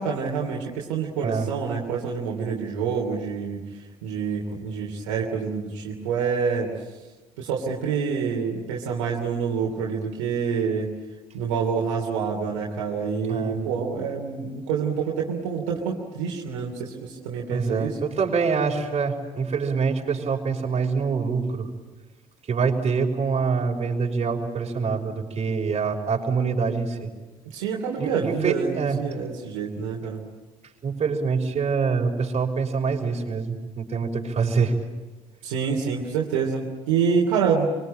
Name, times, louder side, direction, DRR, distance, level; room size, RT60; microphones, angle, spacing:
voice 1, 0.0-3.6 4.0-6.7 7.4-10.9 11.3-18.0 27.4-30.2 35.4-37.7, right 6 dB, 75° right, -1 dB, 3.1 m, -27 dB
voice 2, 13.3-13.7 17.5-21.7 22.5-27.1 28.0-29.0 30.8-34.8, right 5 dB, 40° right, 1 dB, 5.7 m, -25 dB
25.0 x 24.5 x 8.9 m, 1.2 s
hypercardioid pair, 55°, 16 cm